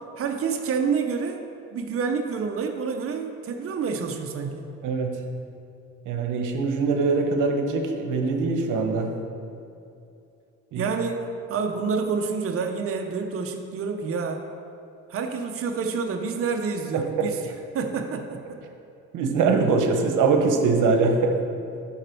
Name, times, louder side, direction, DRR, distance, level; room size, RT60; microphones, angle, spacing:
voice 1, 0.2-1.4 1.7-4.7 10.7-14.4 15.1-18.6, right 5 dB, 50° right, 4 dB, 0.7 m, -28 dB
voice 2, 6.1-9.1 10.7-10.8 16.9-17.3 19.1-21.3, right 4 dB, 85° right, 3 dB, 0.9 m, -22 dB
12.0 x 4.3 x 4.5 m, 2.6 s
cardioid pair, 90°, 30 cm